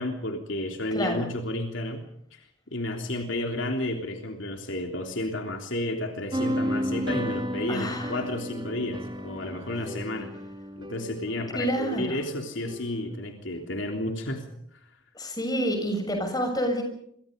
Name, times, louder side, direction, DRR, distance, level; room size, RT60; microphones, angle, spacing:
voice 1, 0.0-2.0 2.3-10.3 10.8-14.5, left 1 dB, 65° left, 3 dB, 3.3 m, -32 dB
voice 2, 0.9-1.3 7.7-8.2 11.6-12.2 15.2-16.8, equal, 20° left, 4 dB, 6.8 m, -28 dB
sound 1, 6.3-13.2, equal, 20° right, 1.8 m, -33 dB
27.0 x 24.0 x 5.3 m, 0.70 s
head